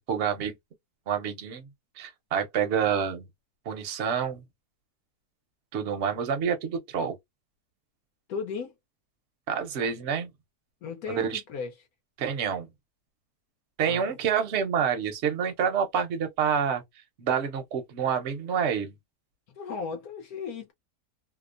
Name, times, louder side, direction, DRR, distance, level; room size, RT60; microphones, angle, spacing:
voice 1, 0.1-0.5 1.1-1.7 2.0-3.3 3.7-4.4 5.7-7.2 9.5-10.3 11.1-11.4 12.2-12.7 13.8-16.8 17.2-18.9, right 7 dB, 55° right, 0.8 m, -28 dB
voice 2, 8.3-8.7 10.8-11.7 13.9-14.3 19.6-20.7, left 5 dB, 70° left, 1.0 m, -36 dB
2.9 x 2.0 x 2.4 m
omnidirectional pair, 1.8 m